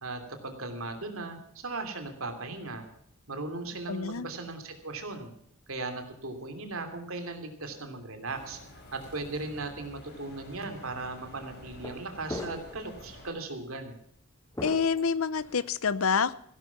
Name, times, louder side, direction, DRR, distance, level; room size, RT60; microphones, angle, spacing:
voice 1, 0.0-2.8 3.3-5.3 5.7-8.6 8.9-14.0, right 3 dB, 70° right, 7 dB, 2.9 m, -37 dB
voice 2, 3.9-4.3 14.6-16.3, left 5 dB, 70° left, 18 dB, 0.7 m, -27 dB
sound 1, 8.3-13.3, left 1 dB, 50° left, 5.6 m, -50 dB
sound 2, 10.6-10.8 11.7-12.0 12.3-12.8 13.2-13.4 14.5-15.7, left 1 dB, 15° left, 1.6 m, -40 dB
16.0 x 12.0 x 5.9 m, 0.69 s
head